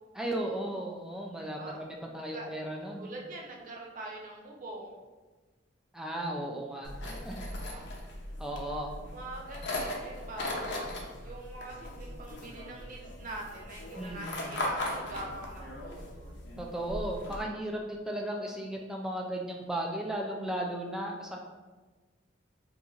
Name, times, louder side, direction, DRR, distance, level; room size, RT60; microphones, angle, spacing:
voice 1, 0.1-3.1 5.9-7.5 8.4-8.9 14.0-14.5 16.6-21.4, right 1 dB, 5° right, -1 dB, 0.3 m, -35 dB
voice 2, 1.4-1.8 2.3-2.5 3.0-5.0 7.4-7.9 9.1-10.9 11.2-16.3, right 2 dB, 45° right, -1 dB, 0.6 m, -44 dB
sound 1, 6.8-17.4, left 1 dB, 65° left, 0.6 m, -39 dB
4.3 x 2.6 x 2.4 m, 1.3 s
head